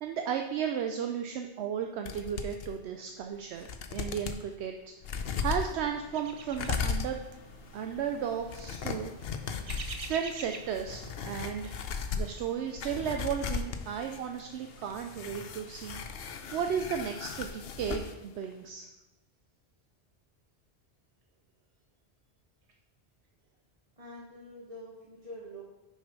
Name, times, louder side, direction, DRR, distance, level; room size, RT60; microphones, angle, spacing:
voice 1, 0.0-4.7 5.4-7.2 7.7-9.1 10.1-11.8 12.1-18.9, right 8 dB, 75° right, 5 dB, 0.8 m, -34 dB
sound 1, 2.1-2.7 3.2-3.3 3.6-4.4 5.0-18.1 18.4-18.5, left 5 dB, 65° left, 0.8 m, -37 dB
sound 2, 6.1-12.5, right 5 dB, 50° right, 0.4 m, -48 dB
voice 2, 24.0-25.7, equal, 30° right, -5 dB, 1.2 m, -46 dB
6.4 x 5.3 x 5.2 m, 1.0 s
omnidirectional pair, 1.1 m